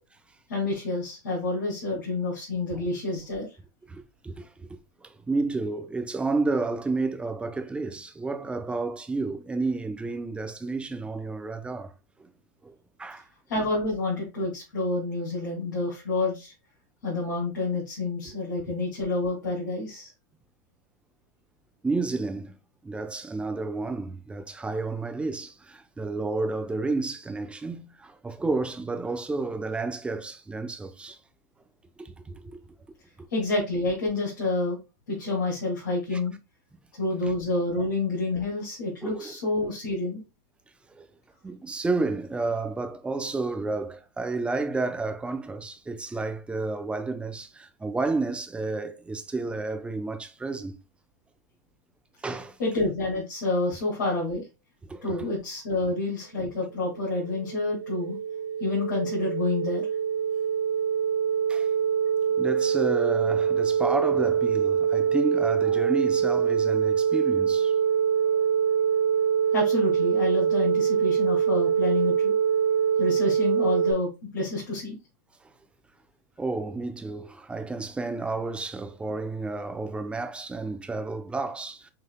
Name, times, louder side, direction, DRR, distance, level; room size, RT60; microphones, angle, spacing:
voice 1, 0.5-3.5 13.5-16.5 17.0-20.1 33.3-34.8 35.1-36.3 37.0-40.2 52.6-54.4 55.0-58.2 58.6-59.8 69.5-72.3 73.0-75.0, left 2 dB, 85° left, 2.5 m, -28 dB
voice 2, 3.9-4.7 5.0-11.9 12.2-12.3 12.6-13.3 18.2-18.6 21.8-22.6 22.8-31.2 32.0-32.6 36.1-36.2 39.0-39.3 40.9-41.1 41.4-50.8 52.2-52.6 54.9-55.3 61.5-61.7 62.4-67.7 68.3-68.5 76.4-81.9, right 3 dB, 10° right, 0.6 m, -31 dB
sound 1, 56.9-73.9, right 7 dB, 50° right, 1.0 m, -24 dB
5.7 x 3.2 x 2.2 m
hypercardioid pair, 110°, 10 cm